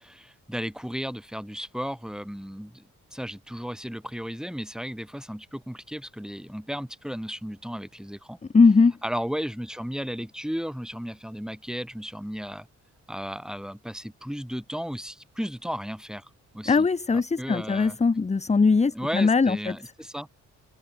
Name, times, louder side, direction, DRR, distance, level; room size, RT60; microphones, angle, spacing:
voice 1, 0.0-2.8 3.1-8.4 9.0-12.7 13.1-16.9 17.4-18.0 18.9-20.3, equal, ahead, 5.9 m, -34 dB
voice 2, 8.5-9.0 16.7-19.8, left 4 dB, 20° left, 0.8 m, -20 dB
cardioid pair, 60°, 31 cm